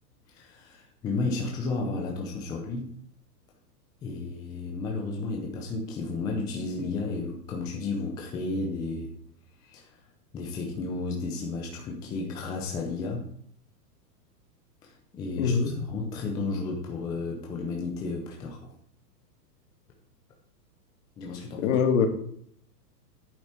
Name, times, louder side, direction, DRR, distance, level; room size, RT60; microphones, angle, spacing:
voice 1, 0.3-3.0 4.0-9.1 9.6-9.9 10.3-13.3 14.8-18.7 21.2-21.8, left 3 dB, 10° left, 0 dB, 0.5 m, -33 dB
voice 2, 15.4-15.7 21.6-22.1, left 6 dB, 50° left, 4 dB, 2.2 m, -23 dB
10.5 x 8.5 x 4.4 m, 0.64 s
hypercardioid pair, 155°, 50 cm